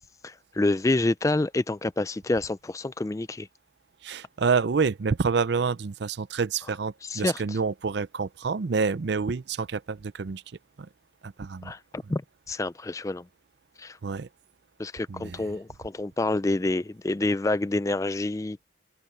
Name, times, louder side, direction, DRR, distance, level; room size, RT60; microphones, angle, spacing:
voice 1, 0.2-3.5 7.0-7.4 11.6-12.2 12.5-13.2 13.8-14.0 14.8-18.7, left 2 dB, 15° left, 0.3 m, -27 dB
voice 2, 4.0-10.4 10.8-10.9 11.2-11.7 12.0-12.1 14.0-14.3 15.1-15.5, right 5 dB, 55° right, 0.5 m, -28 dB
head